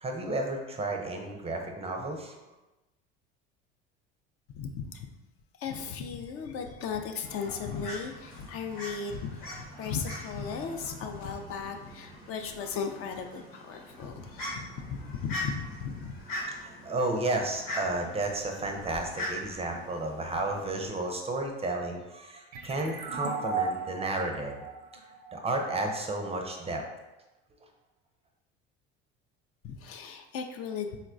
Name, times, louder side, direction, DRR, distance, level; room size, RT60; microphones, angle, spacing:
voice 1, 0.0-2.4 16.6-24.6 25.3-26.8, right 2 dB, 20° right, 3 dB, 0.4 m, -32 dB
voice 2, 4.6-5.1 5.6-16.1 29.6-31.0, left 6 dB, 50° left, 5 dB, 0.4 m, -36 dB
Fowl, 7.2-20.9, left 1 dB, 80° left, 1.1 m, -42 dB
sound 1, 22.5-26.0, right 5 dB, 80° right, 0.5 m, -36 dB
4.0 x 2.1 x 2.4 m, 1.0 s
hypercardioid pair, 75°, 30 cm